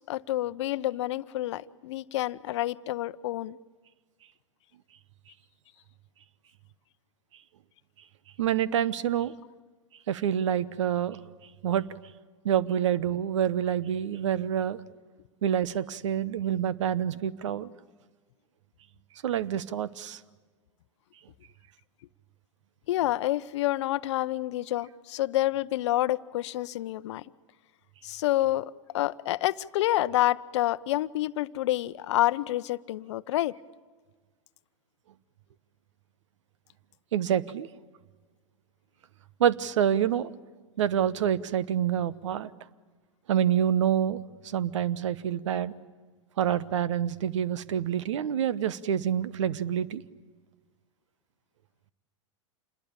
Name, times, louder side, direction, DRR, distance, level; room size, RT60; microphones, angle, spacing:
voice 1, 0.0-3.6 22.9-27.2 28.0-33.6, left 15 dB, 65° left, 16 dB, 0.8 m, -28 dB
voice 2, 8.4-9.4 10.1-11.2 11.6-11.9 12.4-14.8 15.4-17.7 19.2-20.2 37.1-37.7 39.4-40.3 40.8-42.5 43.3-45.7 46.4-50.0, right 9 dB, 70° right, 18 dB, 1.0 m, -27 dB
27.5 x 21.0 x 8.7 m, 1.4 s
hypercardioid pair, 105°, 16 cm